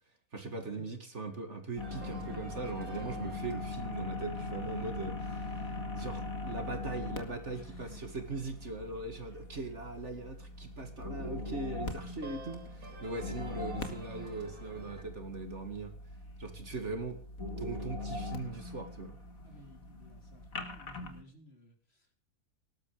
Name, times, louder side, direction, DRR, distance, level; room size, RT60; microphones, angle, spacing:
voice 1, 0.3-15.9 16.4-17.2 17.6-19.2, right 3 dB, 50° right, 8 dB, 2.5 m, -40 dB
sound 1, 1.8-21.2, left 2 dB, 60° left, 2.7 m, -41 dB
sound 2, 1.8-15.0, right 2 dB, 65° right, 4.3 m, -54 dB
voice 2, 7.5-8.1 19.4-22.1, left 1 dB, 40° left, 4 dB, 4.0 m, -57 dB
19.5 x 12.0 x 5.0 m, 0.39 s
omnidirectional pair, 1.6 m